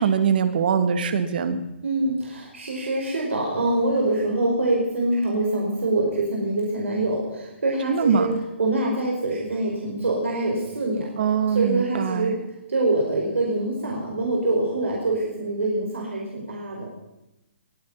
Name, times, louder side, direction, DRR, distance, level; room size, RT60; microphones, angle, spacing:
voice 1, 0.0-1.6 7.9-8.3 11.2-12.4, right 7 dB, 50° right, 11 dB, 1.8 m, -22 dB
voice 2, 1.8-8.3 8.6-12.3 12.7-16.9, right 2 dB, 85° right, -2 dB, 5.0 m, -25 dB
22.0 x 9.9 x 5.7 m, 0.93 s
hypercardioid pair, 155°, 7 cm